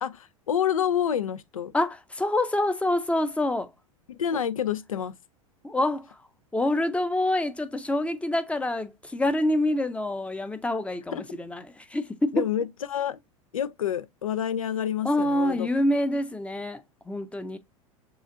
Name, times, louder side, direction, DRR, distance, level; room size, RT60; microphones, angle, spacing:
voice 1, 0.0-1.7 4.1-5.1 11.1-11.2 12.3-13.2 13.5-15.7, left 9 dB, 80° left, 0.5 m, -28 dB
voice 2, 1.7-3.7 5.6-6.2 6.5-12.4 15.0-17.6, left 1 dB, 5° left, 0.6 m, -26 dB
6.9 x 2.4 x 2.5 m
figure-of-eight pair, 85°, 17 cm